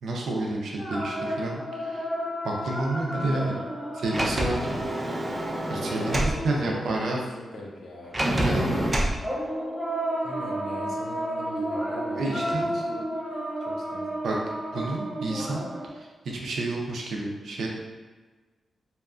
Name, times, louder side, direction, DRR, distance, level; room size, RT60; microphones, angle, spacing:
voice 1, 0.0-2.1 2.4-3.6 4.0-4.8 5.7-7.2 8.2-8.7 12.2-12.7 14.2-14.4 14.7-15.6 15.9-17.7, right 2 dB, 80° right, -1 dB, 0.5 m, -30 dB
sound 1, 0.8-7.0 9.2-15.9, right 1 dB, 35° left, 0.9 m, -32 dB
voice 2, 3.1-3.7 6.0-8.9 10.2-13.1 13.7-14.1, left 1 dB, 85° left, -2 dB, 0.5 m, -40 dB
Sliding door, 4.1-6.4 8.1-9.2, right 1 dB, 25° right, 0.4 m, -27 dB
2.8 x 2.2 x 2.4 m, 1.3 s
wide cardioid pair, 110°, 0 cm